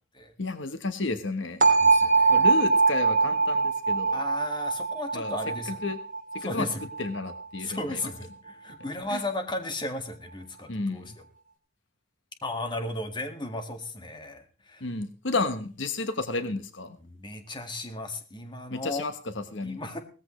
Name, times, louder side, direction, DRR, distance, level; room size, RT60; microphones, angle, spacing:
voice 1, 0.4-1.7 2.3-4.2 5.1-5.4 5.7-6.0 6.3-6.7 7.0-8.0 9.1-9.2 10.7-11.1 14.8-17.0 18.7-19.8, left 3 dB, 70° left, 9 dB, 1.2 m, -32 dB
sound 1, 1.6-7.4, right 4 dB, 45° right, 2.9 m, -23 dB
voice 2, 1.8-2.8 4.1-5.9 6.4-6.9 7.6-11.3 12.4-14.9 17.0-19.1 19.6-20.0, left 2 dB, 25° left, 6 dB, 2.0 m, -35 dB
18.0 x 14.5 x 3.2 m, 0.36 s
head